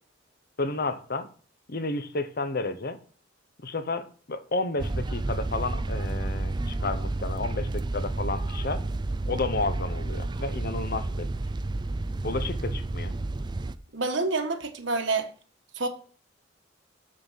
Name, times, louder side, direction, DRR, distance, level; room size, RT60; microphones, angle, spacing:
voice 1, 0.6-1.3 1.7-3.0 3.6-8.8 9.3-11.3 12.2-13.2, left 3 dB, 50° left, 0.9 m, -31 dB
sound 1, 4.8-13.8, right 2 dB, 20° right, 0.4 m, -31 dB
voice 2, 13.9-15.3 15.7-15.9, right 3 dB, 65° right, 1.4 m, -27 dB
7.4 x 6.6 x 5.8 m
head